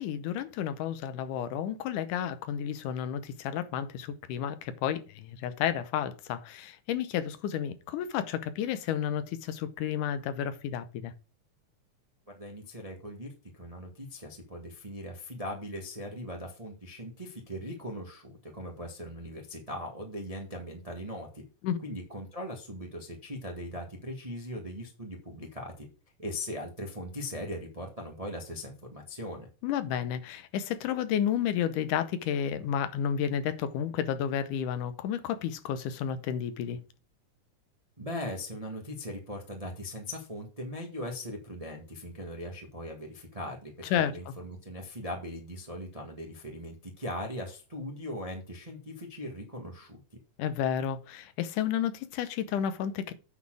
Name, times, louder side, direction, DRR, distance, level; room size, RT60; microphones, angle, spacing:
voice 1, 0.0-11.1 21.6-21.8 29.6-36.8 43.9-44.1 50.4-53.1, left 9 dB, 85° left, 2.4 m, -31 dB
voice 2, 12.3-21.4 21.8-25.9 26.2-29.5 38.0-50.0, equal, 30° right, 0.7 m, -39 dB
9.1 x 4.1 x 6.1 m
omnidirectional pair, 3.6 m